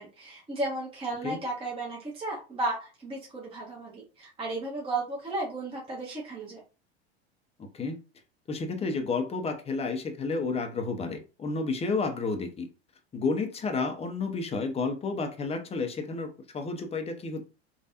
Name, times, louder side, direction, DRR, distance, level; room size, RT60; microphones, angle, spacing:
voice 1, 0.0-6.6, right 2 dB, 15° right, 1.1 m, -34 dB
voice 2, 7.6-8.0 8.5-12.7 13.1-17.4, left 4 dB, 20° left, 0.6 m, -31 dB
3.2 x 2.3 x 2.8 m
hypercardioid pair, 90°, 33 cm